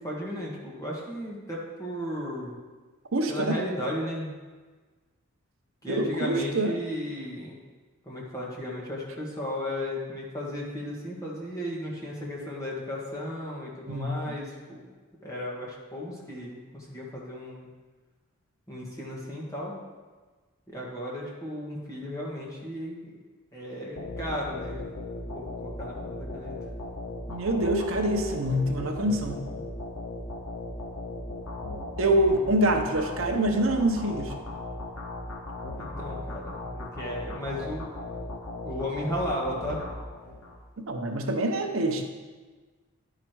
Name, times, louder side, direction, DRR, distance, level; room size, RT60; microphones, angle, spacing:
voice 1, 0.0-2.6 3.3-4.3 5.8-7.6 8.0-14.9 15.2-17.7 18.7-19.8 20.7-23.1 23.5-24.8 25.3-26.6 35.7-37.8 38.6-39.8, left 1 dB, 15° left, -4 dB, 1.7 m, -35 dB
voice 2, 3.1-3.6 5.9-6.8 13.9-14.3 27.3-29.4 32.0-34.3 40.9-42.0, right 1 dB, 70° right, 4 dB, 0.8 m, -25 dB
sound 1, 24.0-40.6, left 2 dB, 90° left, 1.2 m, -37 dB
11.0 x 5.0 x 4.6 m, 1.4 s
head